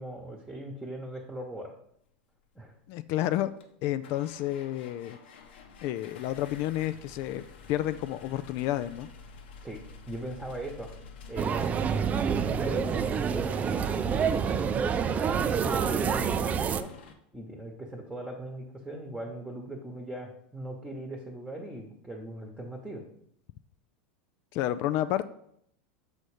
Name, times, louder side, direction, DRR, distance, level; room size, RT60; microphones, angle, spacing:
voice 1, 0.0-1.7 2.5-2.8 9.6-9.8 10.1-10.9 11.3-11.8 12.2-13.1 13.3-16.9 17.3-23.0, right 1 dB, 5° right, 1 dB, 1.1 m, -39 dB
sound 1, 2.9-3.0 3.6-17.1, left 4 dB, 80° left, 1.0 m, -49 dB
voice 2, 2.9-3.5 3.8-5.2 5.8-7.4 7.7-9.1 24.5-25.3, left 13 dB, 55° left, 12 dB, 0.4 m, -30 dB
sound 2, 11.4-16.8, right 7 dB, 25° right, 0.4 m, -27 dB
6.4 x 4.1 x 4.9 m, 0.70 s
hypercardioid pair, 110°, 6 cm